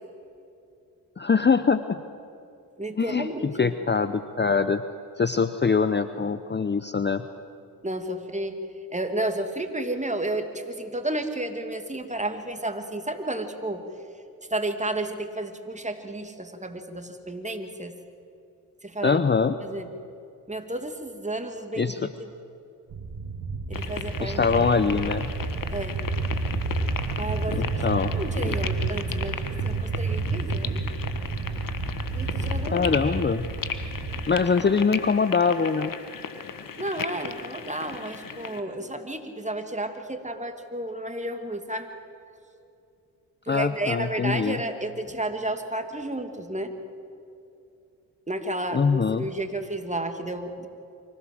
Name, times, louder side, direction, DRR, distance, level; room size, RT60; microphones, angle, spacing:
voice 1, 1.2-2.0 3.0-4.8 5.2-7.2 19.0-19.6 21.8-22.1 24.2-25.3 27.5-28.1 28.4-28.6 32.7-33.5 34.3-35.9 43.5-44.6 48.7-49.3, left 5 dB, 25° left, 12 dB, 0.8 m, -23 dB
voice 2, 2.8-3.7 7.8-8.6 8.9-13.8 14.5-17.9 18.8-19.2 19.6-19.9 20.5-22.3 23.7-24.4 25.7-26.0 27.2-30.9 32.1-32.9 36.8-41.9 43.4-46.7 48.3-50.7, right 1 dB, 15° right, 6 dB, 2.5 m, -32 dB
sound 1, 22.9-34.3, right 3 dB, 60° right, 2.4 m, -30 dB
sound 2, 23.7-38.6, left 6 dB, 50° left, 1.6 m, -36 dB
24.5 x 16.0 x 7.8 m, 2.6 s
hypercardioid pair, 40°, 43 cm